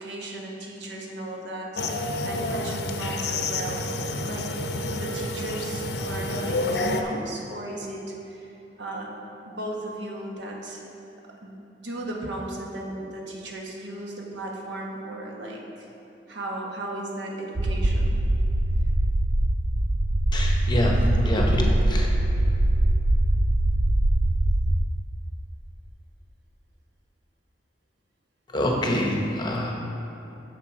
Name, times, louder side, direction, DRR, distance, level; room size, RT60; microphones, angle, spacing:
voice 1, 0.0-1.8 2.2-3.8 4.1-8.5 8.8-9.2 9.4-10.9 11.4-11.6 11.8-15.6 16.3-18.2, right 1 dB, 85° right, -1 dB, 1.2 m, -36 dB
sound 1, 1.8-7.0, left 2 dB, 65° left, 0.5 m, -29 dB
sound 2, 17.6-24.8, right 1 dB, 45° right, 0.4 m, -22 dB
voice 2, 20.3-22.1 28.5-29.7, left 1 dB, 25° left, 0 dB, 0.9 m, -25 dB
7.4 x 6.7 x 4.8 m, 2.9 s
head